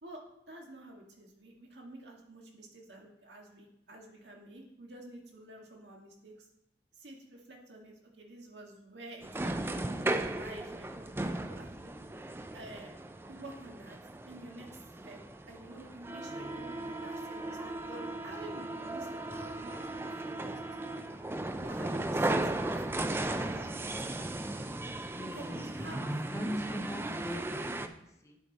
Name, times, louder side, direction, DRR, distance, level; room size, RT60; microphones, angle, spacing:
voice 1, 0.0-6.5 6.9-11.9 12.5-12.9 13.3-14.0 14.3-15.2 15.5-21.2 21.6-24.3 25.2-26.1 27.3-27.5, right 1 dB, 90° right, 0 dB, 1.8 m, -49 dB
sound 1, 9.2-27.9, right 2 dB, 15° right, 0.3 m, -36 dB
voice 2, 16.3-16.8 18.7-18.8 25.1-28.4, equal, 15° left, 3 dB, 0.7 m, -45 dB
10.5 x 4.9 x 4.1 m, 0.82 s
head